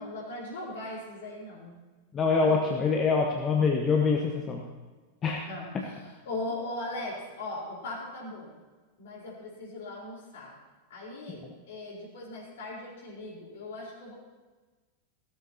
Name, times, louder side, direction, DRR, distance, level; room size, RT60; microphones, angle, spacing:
voice 1, 0.0-1.8 2.3-2.6 5.5-8.6 9.0-10.5 10.9-14.2, left 2 dB, 55° left, -2 dB, 4.2 m, -39 dB
voice 2, 2.1-4.6 5.2-5.4, left 4 dB, 25° left, 0 dB, 1.2 m, -25 dB
16.5 x 13.0 x 2.9 m, 1.3 s
figure-of-eight pair, 90°, 0 cm